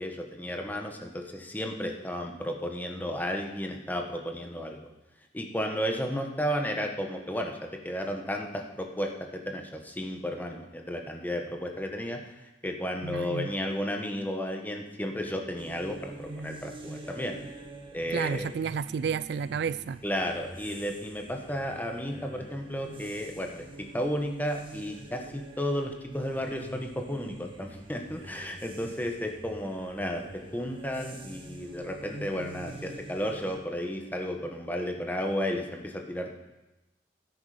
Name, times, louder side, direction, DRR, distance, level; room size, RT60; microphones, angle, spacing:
voice 1, 0.0-4.8 5.3-7.6 7.8-12.2 12.6-17.3 17.9-18.5 20.0-36.4, equal, 10° left, 1.3 m, -33 dB
voice 2, 13.0-13.5 18.1-20.0, right 6 dB, 65° right, 0.3 m, -31 dB
sound 1, 15.6-33.6, right 2 dB, 30° right, 1.5 m, -46 dB
13.5 x 9.7 x 5.0 m
head